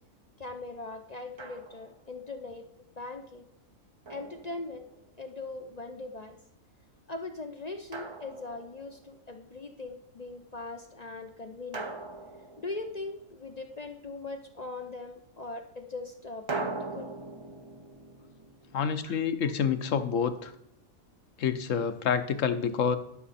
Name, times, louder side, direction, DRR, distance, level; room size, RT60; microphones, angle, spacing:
voice 1, 0.4-2.7 3.0-3.5 4.1-4.8 5.2-6.4 7.1-11.9 12.6-17.1 19.0-19.2 19.4-19.5, left 3 dB, 40° left, 6 dB, 0.7 m, -40 dB
Drum, 1.4-2.1 4.1-5.1 7.9-9.1 11.7-13.4 16.5-19.5, right 3 dB, 35° right, 0.5 m, -41 dB
voice 2, 18.7-20.5 21.4-23.0, left 7 dB, 70° left, 10 dB, 1.1 m, -28 dB
12.5 x 6.3 x 4.1 m, 0.78 s
omnidirectional pair, 1.4 m